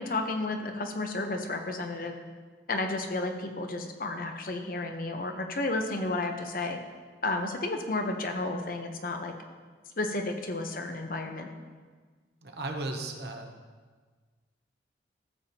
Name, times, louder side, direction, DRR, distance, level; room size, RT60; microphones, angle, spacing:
voice 1, 0.0-2.2 2.7-6.8 7.2-9.3 10.0-11.5, left 2 dB, 50° left, 5 dB, 0.8 m, -32 dB
voice 2, 12.4-13.6, right 2 dB, 65° right, 3 dB, 0.9 m, -36 dB
14.0 x 7.0 x 2.8 m, 1.5 s
head